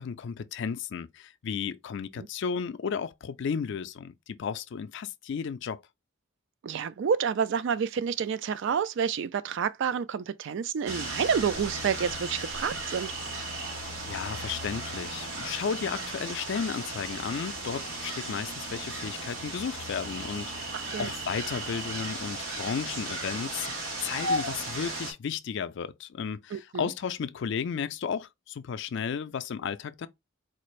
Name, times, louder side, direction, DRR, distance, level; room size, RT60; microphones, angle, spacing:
voice 1, 0.0-5.8 14.1-23.7 24.0-30.1, left 6 dB, 60° left, 0.4 m, -34 dB
voice 2, 6.6-13.1 20.7-21.1 26.5-26.9, right 7 dB, 65° right, 0.3 m, -29 dB
sound 1, 10.9-25.1, right 2 dB, 90° right, 1.7 m, -35 dB
4.3 x 2.5 x 3.1 m
head